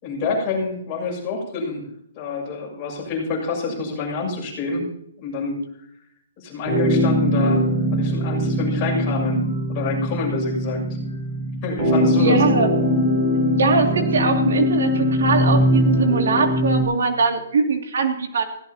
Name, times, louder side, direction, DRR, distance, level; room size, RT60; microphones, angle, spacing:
voice 1, 0.0-1.9 2.1-4.9 5.2-5.6 6.4-9.4 9.7-10.8 11.6-12.4, left 4 dB, 20° left, -2 dB, 6.8 m, -27 dB
sound 1, 6.7-16.8, equal, 25° right, 6.6 m, -21 dB
voice 2, 12.2-12.7 13.5-18.4, right 4 dB, 65° right, 3 dB, 2.6 m, -21 dB
20.0 x 16.5 x 2.9 m, 0.74 s
hypercardioid pair, 175°, 0 cm